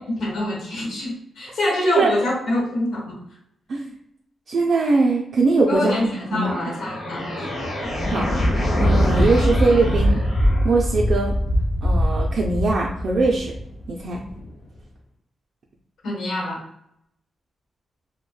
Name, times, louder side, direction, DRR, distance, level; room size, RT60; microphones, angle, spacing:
voice 1, 0.2-3.2 5.7-7.5 16.0-16.6, left 1 dB, 75° left, -2 dB, 1.0 m, -25 dB
voice 2, 4.5-6.6 8.1-8.3 8.8-10.2 10.6-11.3 11.8-13.5 13.9-14.2, right 3 dB, 45° right, -3 dB, 0.3 m, -21 dB
sound 1, 6.1-11.0, left 1 dB, 55° left, 0.7 m, -30 dB
Thunder, 7.8-14.5, equal, 35° left, 0.3 m, -22 dB
2.2 x 2.1 x 3.1 m, 0.75 s
wide cardioid pair, 165°, 0 cm